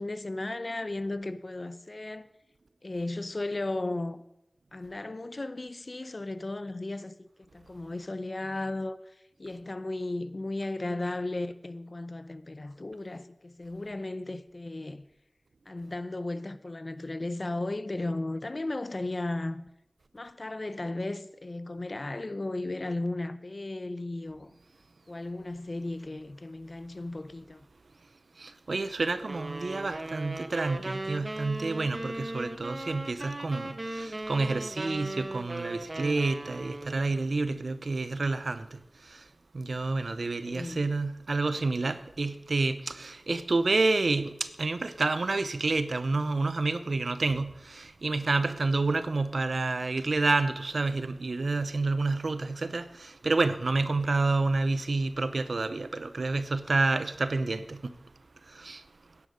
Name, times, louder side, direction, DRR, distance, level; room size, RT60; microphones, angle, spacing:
voice 1, 0.0-2.3 2.8-4.2 4.7-15.0 15.7-19.6 20.1-24.5 25.1-27.7 40.4-40.8, left 2 dB, 55° left, 0.7 m, -35 dB
voice 2, 28.4-39.2 39.5-57.9 58.5-58.8, right 3 dB, 80° right, 0.6 m, -29 dB
sound 1, 29.3-37.2, right 2 dB, 45° right, 1.0 m, -38 dB
11.0 x 9.8 x 5.2 m
wide cardioid pair, 45°, 0 cm